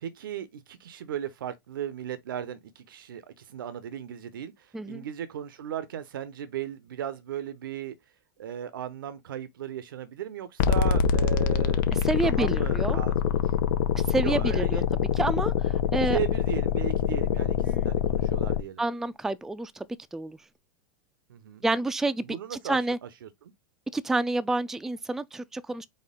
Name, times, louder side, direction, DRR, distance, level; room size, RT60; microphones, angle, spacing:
voice 1, 0.0-7.9 8.4-11.8 12.2-13.5 14.2-14.8 15.9-18.8 21.3-21.6 22.2-23.5, right 10 dB, 85° right, 0.6 m, -37 dB
voice 2, 4.7-5.0 12.0-13.0 14.1-14.8 15.2-16.2 17.6-17.8 18.8-19.9 20.1-20.4 21.6-22.2 22.5-23.0 23.9-25.9, right 2 dB, 5° right, 0.3 m, -28 dB
sound 1, 10.6-18.6, left 8 dB, 65° left, 0.7 m, -25 dB
4.3 x 3.2 x 3.6 m
hypercardioid pair, 110°, 11 cm